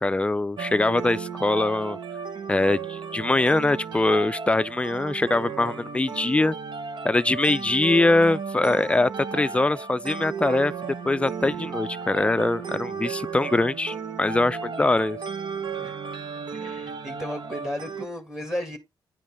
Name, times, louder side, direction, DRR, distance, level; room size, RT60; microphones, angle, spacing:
voice 1, 0.0-2.0 2.5-6.6 7.0-15.2, left 2 dB, 15° left, 0.4 m, -23 dB
sound 1, 0.6-18.1, right 6 dB, 70° right, 1.0 m, -34 dB
voice 2, 16.5-18.8, left 1 dB, 5° right, 2.0 m, -34 dB
9.8 x 5.2 x 3.5 m
cardioid pair, 105°, 8 cm